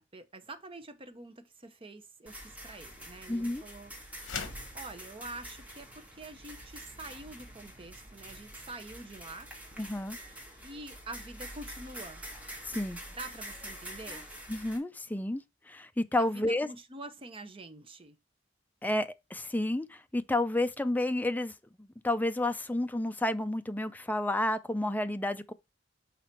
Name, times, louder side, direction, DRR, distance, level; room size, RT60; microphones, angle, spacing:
voice 1, 0.0-3.9 4.7-9.5 10.6-12.2 13.1-14.2 16.2-18.2, right 2 dB, 30° right, 0.8 m, -46 dB
sound 1, 2.3-14.8, equal, 10° right, 1.8 m, -46 dB
voice 2, 3.3-3.6 9.8-10.2 12.6-13.0 14.5-15.4 15.7-16.7 18.8-21.5 21.8-25.5, left 1 dB, 10° left, 0.5 m, -31 dB
sound 2, 4.2-4.7, left 6 dB, 80° left, 1.0 m, -38 dB
5.9 x 4.0 x 4.5 m
head